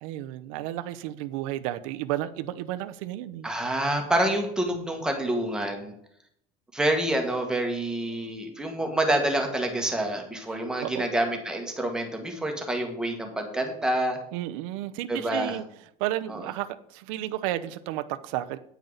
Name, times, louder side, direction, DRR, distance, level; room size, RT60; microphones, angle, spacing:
voice 1, 0.0-3.5 10.8-11.1 14.3-15.6 16.0-18.6, right 14 dB, 85° right, 0.7 m, -32 dB
voice 2, 3.4-5.9 6.7-14.2 15.1-15.6 16.3-16.4, right 1 dB, 5° right, 1.5 m, -27 dB
9.4 x 9.2 x 4.0 m
cardioid pair, 175°, 17 cm